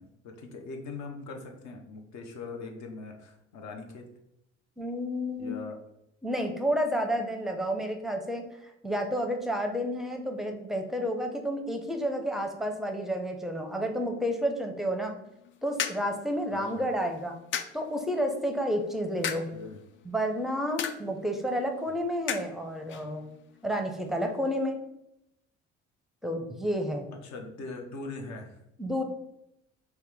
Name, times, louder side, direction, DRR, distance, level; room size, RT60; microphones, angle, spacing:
voice 1, 0.0-4.0 5.4-5.8 16.5-16.9 19.5-19.8 21.9-22.0 27.1-28.6, left 3 dB, 55° left, 3 dB, 0.8 m, -41 dB
voice 2, 4.8-5.5 6.2-8.4 8.8-15.1 15.6-17.4 17.7-19.5 20.0-23.3 23.6-24.8 26.2-27.1 28.8-29.0, equal, ahead, 4 dB, 0.6 m, -30 dB
sound 1, 15.2-24.7, left 8 dB, 35° left, 0.4 m, -40 dB
4.3 x 2.2 x 3.4 m, 0.81 s
hypercardioid pair, 55°, 34 cm